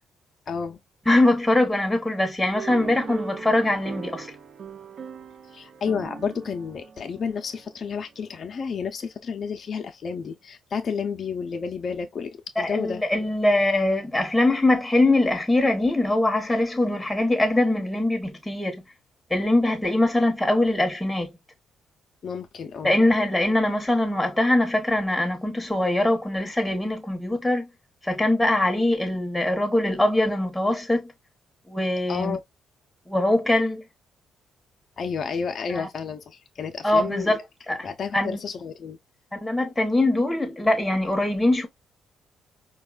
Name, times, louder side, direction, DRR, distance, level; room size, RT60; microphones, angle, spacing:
voice 1, 0.5-0.8 5.5-13.0 22.2-23.0 32.1-32.4 35.0-37.4 37.7-39.0, left 6 dB, 50° left, 0.6 m, -31 dB
voice 2, 1.1-4.3 12.6-18.8 19.3-21.3 22.8-27.7 28.0-31.1 31.7-32.4 33.1-33.8 35.7-35.9 36.8-37.4 37.7-37.9 38.1-38.4 39.3-41.7, left 1 dB, 5° left, 1.0 m, -22 dB
sound 1, 2.5-8.1, right 6 dB, 55° right, 0.6 m, -40 dB
4.5 x 2.3 x 2.3 m
cardioid pair, 90°, 0 cm